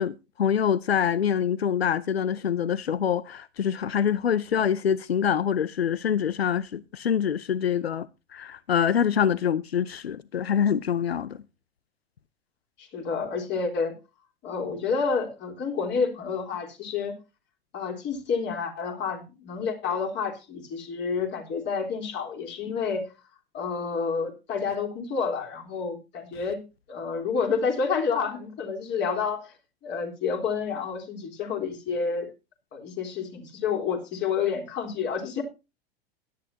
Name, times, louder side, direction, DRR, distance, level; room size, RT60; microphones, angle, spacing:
voice 1, 0.0-8.1 8.3-11.4, left 8 dB, 85° left, 0.6 m, -25 dB
voice 2, 12.8-13.9 14.4-17.2 17.7-23.1 23.5-29.5 29.8-32.3 32.7-35.4, left 5 dB, 35° left, 3.7 m, -29 dB
17.0 x 11.0 x 2.7 m
figure-of-eight pair, 90°, 30 cm